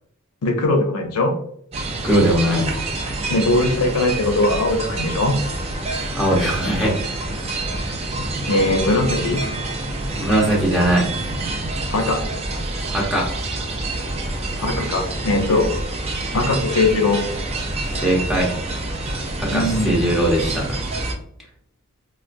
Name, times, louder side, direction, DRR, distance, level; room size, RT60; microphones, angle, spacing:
voice 1, 0.4-1.3 3.3-5.4 8.5-9.4 11.9-12.2 14.6-15.7 16.3-17.2 19.5-19.9, left 2 dB, 85° left, 5 dB, 0.6 m, -20 dB
sound 1, 1.7-21.1, right 2 dB, 25° right, 0.4 m, -27 dB
voice 2, 2.0-2.7 6.1-6.9 10.2-11.1 12.9-13.3 18.0-18.5 19.4-20.7, right 1 dB, ahead, -5 dB, 1.0 m, -19 dB
3.8 x 2.1 x 2.5 m, 0.67 s
head